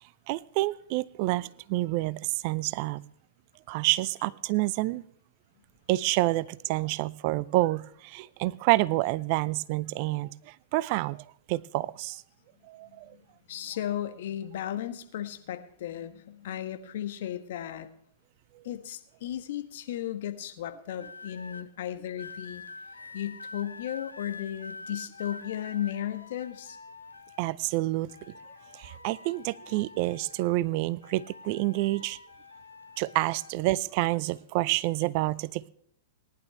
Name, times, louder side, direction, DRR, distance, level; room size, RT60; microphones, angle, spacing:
voice 1, 0.3-3.0 3.7-5.0 5.9-11.2 11.5-12.2 12.7-13.2 27.4-28.1 28.7-32.2 33.0-35.7, right 19 dB, 45° right, 20 dB, 0.5 m, -28 dB
voice 2, 13.5-17.9 18.6-22.6 23.1-26.8, left 11 dB, 60° left, 9 dB, 1.4 m, -35 dB
sound 1, 20.9-21.6 22.2-27.7 28.1-30.7 31.0-33.5 34.3-34.6, left 3 dB, 85° left, 1.1 m, -46 dB
19.0 x 11.0 x 3.2 m, 0.66 s
figure-of-eight pair, 105°, 0 cm